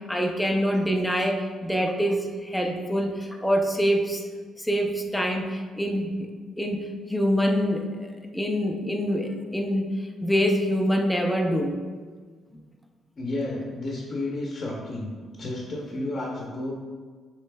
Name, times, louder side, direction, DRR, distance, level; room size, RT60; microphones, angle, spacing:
voice 1, 0.1-4.2 4.6-6.3 6.6-7.9 8.3-11.8, equal, 5° left, 1 dB, 0.5 m, -25 dB
voice 2, 13.2-15.1 15.4-16.8, left 2 dB, 40° left, -2 dB, 0.8 m, -31 dB
6.6 x 3.1 x 2.2 m, 1.5 s
cardioid pair, 90°, 0 cm